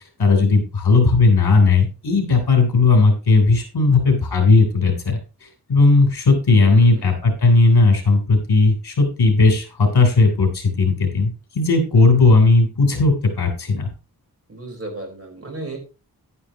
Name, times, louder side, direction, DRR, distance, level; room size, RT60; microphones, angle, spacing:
voice 1, 0.2-13.9, left 3 dB, 85° left, 4 dB, 3.4 m, -16 dB
voice 2, 6.5-7.1 14.5-15.8, right 2 dB, 35° right, 2 dB, 4.3 m, -34 dB
11.0 x 9.7 x 2.9 m, 0.32 s
wide cardioid pair, 100°, 38 cm